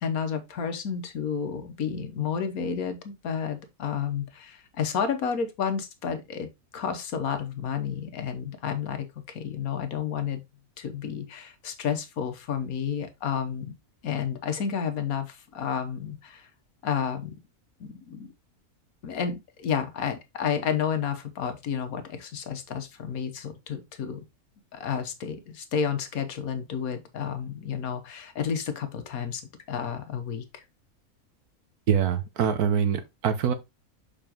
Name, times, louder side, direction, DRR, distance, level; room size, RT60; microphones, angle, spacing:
voice 1, 0.0-6.5 6.7-10.4 10.8-13.7 14.0-16.5 16.8-17.3 17.8-18.3 19.0-24.2 24.7-29.4 29.7-30.6, left 7 dB, 70° left, 1.5 m, -31 dB
voice 2, 31.9-33.5, right 7 dB, 80° right, 1.5 m, -24 dB
6.9 x 5.1 x 2.9 m
omnidirectional pair, 1.6 m